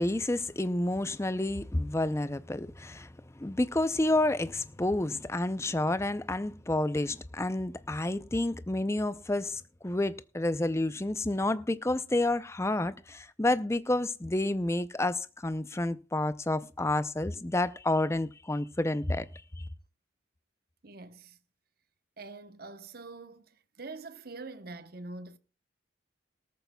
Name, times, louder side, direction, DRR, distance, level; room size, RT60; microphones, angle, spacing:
voice 1, 0.0-3.1 3.4-19.3, left 2 dB, 15° left, 0.5 m, -29 dB
voice 2, 20.8-21.4 22.2-25.4, right 3 dB, 50° right, 1.0 m, -44 dB
18.0 x 14.0 x 2.3 m
head